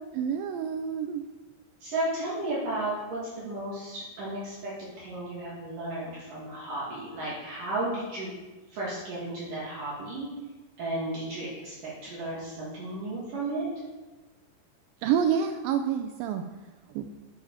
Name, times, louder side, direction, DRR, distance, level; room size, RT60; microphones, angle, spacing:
voice 1, 0.1-1.2 15.0-16.4 17.0-17.1, right 8 dB, 85° right, 7 dB, 2.0 m, -27 dB
voice 2, 1.8-4.7 5.0-8.4 8.7-10.3 10.8-13.7, right 2 dB, 55° right, -7 dB, 3.8 m, -34 dB
12.5 x 7.1 x 4.9 m, 1.2 s
omnidirectional pair, 4.7 m